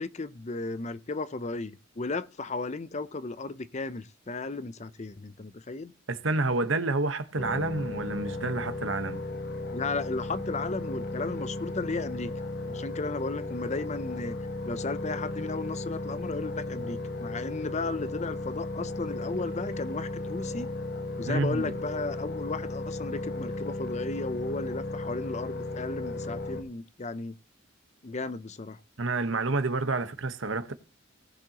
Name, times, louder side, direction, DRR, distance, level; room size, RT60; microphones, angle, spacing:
voice 1, 0.0-5.9 9.7-12.3 12.7-14.3 14.6-20.7 21.2-27.4 28.0-28.8, left 3 dB, 35° left, 0.6 m, -34 dB
voice 2, 6.1-9.2 21.3-21.7 29.0-30.7, right 3 dB, 70° right, 1.2 m, -29 dB
sound 1, 7.4-26.6, left 2 dB, 50° left, 1.5 m, -35 dB
19.0 x 7.6 x 3.0 m
head